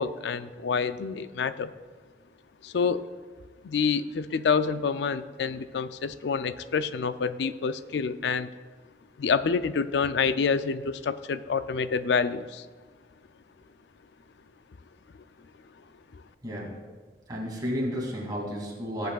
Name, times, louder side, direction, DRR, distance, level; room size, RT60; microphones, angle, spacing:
voice 1, 0.0-1.7 2.6-3.1 3.6-8.5 9.2-12.7, left 5 dB, 80° left, 13 dB, 0.4 m, -27 dB
voice 2, 16.4-16.7 17.3-19.1, equal, 25° right, -4 dB, 2.5 m, -32 dB
18.5 x 8.0 x 2.4 m, 1.5 s
head